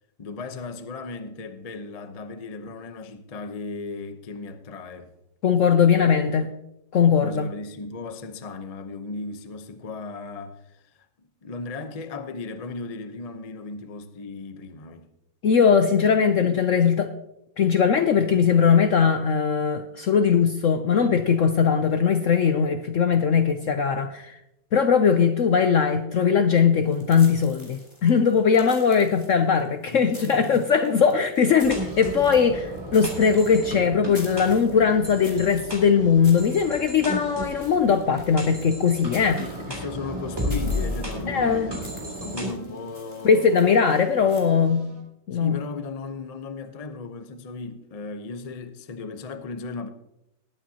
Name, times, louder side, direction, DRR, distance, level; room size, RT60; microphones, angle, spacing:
voice 1, 0.2-5.1 5.8-5.9 7.2-11.1 11.4-15.1 29.9-30.6 39.7-43.7 45.3-49.9, left 4 dB, 50° left, 0.4 m, -36 dB
voice 2, 5.4-6.5 6.9-7.5 15.4-17.1 17.6-24.3 24.7-39.5 41.3-41.7 43.2-44.9 45.3-45.6, left 6 dB, 65° left, 0.8 m, -20 dB
sound 1, 26.8-44.4, left 1 dB, 15° left, 2.7 m, -48 dB
sound 2, 31.6-42.5, equal, 15° right, 3.1 m, -33 dB
sound 3, 34.6-45.0, right 2 dB, 80° right, 5.9 m, -49 dB
19.5 x 9.0 x 2.8 m
omnidirectional pair, 1.9 m